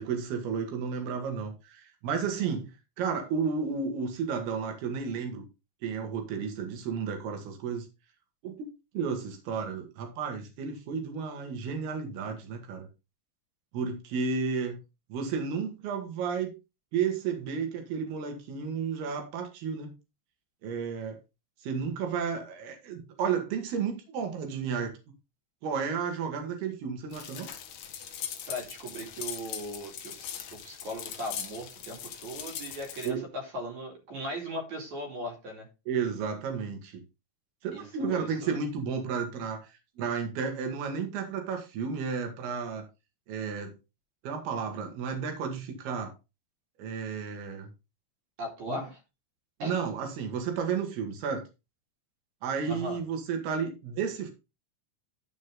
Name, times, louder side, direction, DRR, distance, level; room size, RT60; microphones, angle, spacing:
voice 1, 0.0-2.7 3.0-5.5 5.8-7.9 8.4-8.7 8.9-12.9 13.7-14.8 15.1-16.5 16.9-19.9 20.6-21.2 21.6-25.0 25.6-27.5 33.0-33.3 35.9-37.0 37.6-42.9 43.3-43.7 44.2-46.1 46.8-47.7 48.7-48.8 49.6-51.4 52.4-54.3, right 6 dB, 65° right, 4 dB, 3.8 m, -32 dB
sound 1, 27.1-33.1, left 9 dB, 80° left, 1.6 m, -40 dB
voice 2, 28.5-30.3 30.6-35.7 37.7-38.6 48.4-49.0 49.6-49.7 52.6-53.0, equal, 45° right, 1 dB, 3.5 m, -38 dB
13.0 x 5.3 x 3.7 m, 0.27 s
omnidirectional pair, 5.1 m